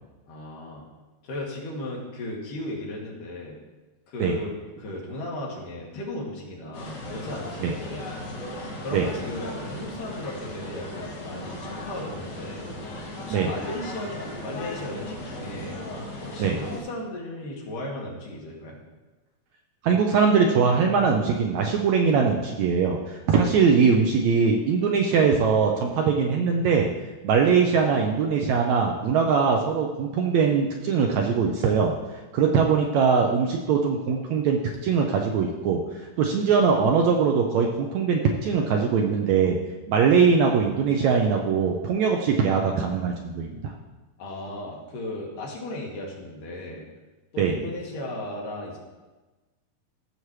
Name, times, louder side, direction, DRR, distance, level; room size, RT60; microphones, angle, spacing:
voice 1, 0.3-0.9 1.2-3.6 4.1-8.3 8.8-12.7 13.2-15.8 16.2-18.8 44.2-46.8 47.3-48.8, left 1 dB, 75° left, -2 dB, 3.3 m, -36 dB
sound 1, 6.7-16.8, left 1 dB, 55° left, 2.8 m, -37 dB
voice 2, 19.8-26.9 27.2-31.9 32.3-35.8 36.2-39.6 39.9-43.7 47.4-47.5, right 6 dB, 75° right, 1 dB, 1.7 m, -21 dB
14.5 x 7.1 x 3.2 m, 1.2 s
omnidirectional pair, 3.8 m